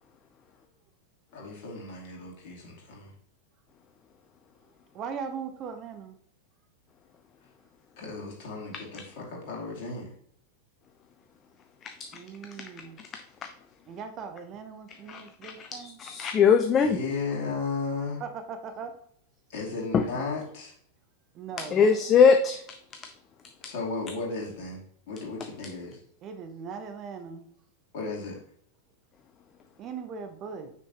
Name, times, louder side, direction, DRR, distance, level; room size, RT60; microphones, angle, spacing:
voice 1, 1.3-3.1 8.0-10.1 16.8-18.2 19.5-20.7 23.6-24.8 25.1-26.0 27.9-28.4, left 4 dB, 50° left, 2.5 m, -34 dB
voice 2, 4.9-6.2 12.1-13.0 13.9-16.0 18.2-19.0 21.3-21.9 26.2-27.5 29.8-30.7, right 6 dB, 35° right, 0.8 m, -39 dB
voice 3, 15.1-17.0 19.9-20.1 21.6-22.6, left 6 dB, 25° left, 0.4 m, -22 dB
6.2 x 5.5 x 2.9 m
figure-of-eight pair, 90°, 0 cm